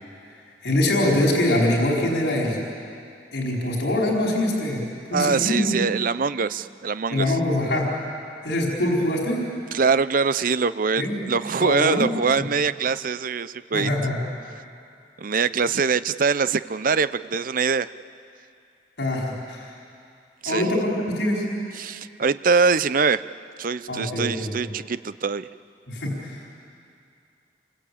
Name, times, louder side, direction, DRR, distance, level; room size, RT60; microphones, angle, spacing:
voice 1, 0.6-2.6 3.3-4.8 5.1-5.8 7.1-7.9 8.4-9.5 11.0-11.2 11.6-12.1 13.7-14.2 19.0-19.7 20.4-21.5 23.9-24.5 25.9-26.4, left 1 dB, 75° left, -2 dB, 4.6 m, -23 dB
voice 2, 5.1-7.3 9.7-13.9 15.2-17.9 20.4-20.6 21.8-23.2 23.6-25.5, right 5 dB, 50° right, 15 dB, 0.6 m, -23 dB
28.0 x 23.5 x 8.7 m, 2.4 s
head